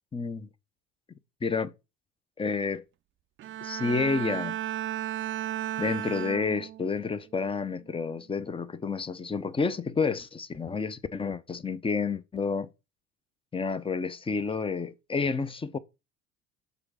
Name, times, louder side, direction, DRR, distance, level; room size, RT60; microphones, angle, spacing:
voice 1, 0.1-0.5 1.4-1.7 2.4-2.8 3.6-4.6 5.8-12.7 13.5-15.8, left 4 dB, 15° left, 0.7 m, -30 dB
Bowed string instrument, 3.4-7.0 7.4-7.8, right 12 dB, 35° right, 0.4 m, -34 dB
6.8 x 3.9 x 5.0 m
hypercardioid pair, 70°, 35 cm